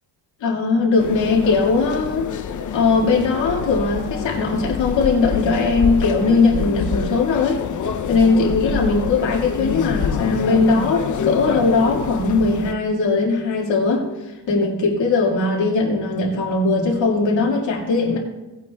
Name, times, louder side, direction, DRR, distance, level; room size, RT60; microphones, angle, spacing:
voice 1, 0.4-2.3 2.7-7.6 8.1-18.2, left 3 dB, 85° left, -3 dB, 2.0 m, -19 dB
sound 1, 1.0-12.7, left 7 dB, 45° left, 0.6 m, -27 dB
18.0 x 9.2 x 2.3 m, 1.1 s
wide cardioid pair, 145°, 43 cm